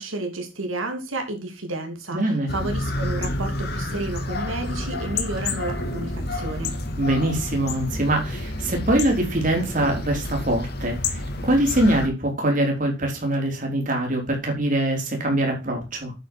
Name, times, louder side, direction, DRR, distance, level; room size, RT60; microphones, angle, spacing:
voice 1, 0.0-6.7, right 2 dB, 90° right, 3 dB, 3.1 m, -31 dB
voice 2, 2.1-2.5 7.0-16.1, right 1 dB, 40° right, 1 dB, 3.9 m, -23 dB
sound 1, 2.5-12.1, left 2 dB, 50° left, 2.1 m, -29 dB
9.2 x 7.8 x 4.6 m, 0.27 s
head